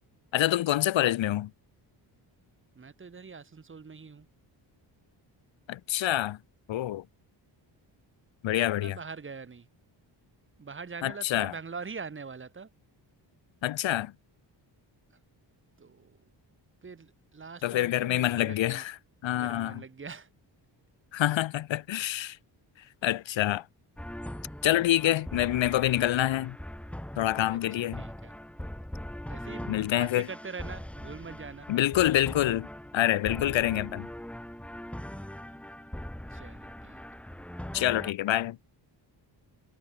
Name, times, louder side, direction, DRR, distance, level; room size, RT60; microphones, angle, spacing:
voice 1, 0.3-1.5 5.7-6.4 6.7-7.0 8.4-9.0 11.0-11.5 13.6-14.1 17.6-18.9 19.2-19.8 21.1-22.4 23.0-23.6 24.6-26.6 27.2-28.0 29.7-30.3 31.7-32.7 32.9-34.1 37.7-38.6, left 13 dB, 80° left, 1.3 m, -26 dB
voice 2, 2.8-4.3 8.8-9.7 10.6-12.7 15.8-16.2 16.8-18.8 19.3-20.3 27.5-28.4 29.3-31.7 36.3-37.0, right 5 dB, 25° right, 4.2 m, -43 dB
sound 1, 24.0-38.1, left 1 dB, 5° left, 2.2 m, -41 dB
wide cardioid pair, 175°, 45 cm